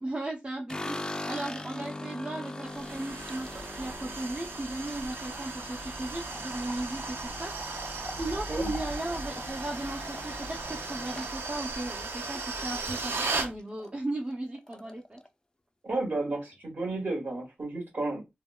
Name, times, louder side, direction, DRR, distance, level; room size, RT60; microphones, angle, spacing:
voice 1, 0.0-7.5 8.2-15.2, right 2 dB, 30° right, 0.6 m, -36 dB
sound 1, 0.7-12.9 13.3-13.9 14.2-14.3 14.5-15.3, left 2 dB, 20° left, 0.3 m, -42 dB
sound 2, 2.7-13.5, right 3 dB, 85° right, 0.5 m, -36 dB
voice 2, 15.8-18.3, right 2 dB, 60° right, 1.6 m, -32 dB
3.4 x 2.2 x 2.3 m
wide cardioid pair, 95°, 4 cm